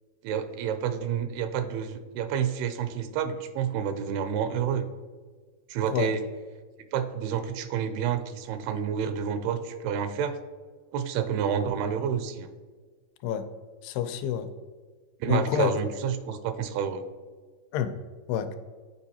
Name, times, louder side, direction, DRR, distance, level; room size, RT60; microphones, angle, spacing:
voice 1, 0.2-4.9 5.7-6.2 6.9-10.3 10.9-12.5 15.2-17.0, right 8 dB, 85° right, 9 dB, 2.5 m, -29 dB
voice 2, 13.8-14.5 15.3-15.7 17.7-18.0 18.3-18.6, left 9 dB, 85° left, 8 dB, 2.4 m, -28 dB
9.2 x 4.7 x 2.8 m, 1.4 s
omnidirectional pair, 4.5 m